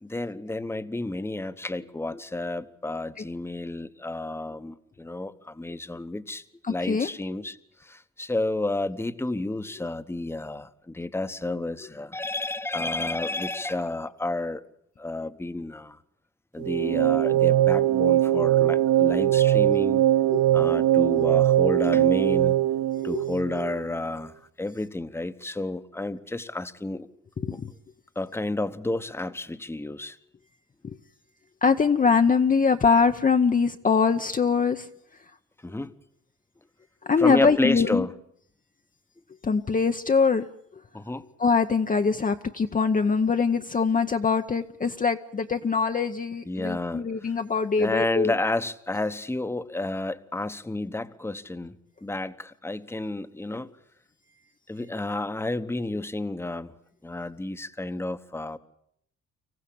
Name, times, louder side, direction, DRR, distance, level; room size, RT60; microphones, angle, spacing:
voice 1, 0.0-14.6 15.0-16.0 16.5-20.0 20.5-22.6 23.0-27.1 27.5-27.6 28.1-30.2 35.6-35.9 37.2-38.1 40.9-41.3 46.5-47.3 47.8-51.7 52.0-53.7 54.7-56.7 57.0-58.6, left 2 dB, 10° left, 12 dB, 1.1 m, -31 dB
voice 2, 6.6-7.1 20.3-20.4 23.1-23.2 27.4-27.7 31.6-34.9 37.1-38.1 39.4-40.5 41.4-48.3, left 5 dB, 25° left, 5 dB, 0.8 m, -23 dB
sound 1, 16.6-23.8, right 13 dB, 90° right, 0.8 m, -21 dB
25.0 x 15.0 x 8.7 m, 0.72 s
cardioid pair, 90°, 30 cm